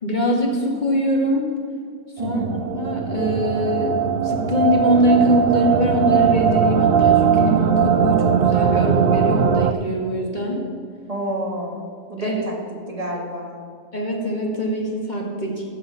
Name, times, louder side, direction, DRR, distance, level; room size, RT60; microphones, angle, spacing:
voice 1, 0.0-1.5 2.2-2.4 2.7-10.6 12.2-12.3 13.9-15.6, equal, 30° left, -1 dB, 1.7 m, -22 dB
voice 2, 2.2-2.5 11.1-12.5 12.9-13.6, right 1 dB, 25° right, -2 dB, 1.9 m, -29 dB
sound 1, 2.2-9.7, right 7 dB, 85° right, 0.4 m, -19 dB
15.0 x 6.4 x 5.7 m, 2.1 s
omnidirectional pair, 1.6 m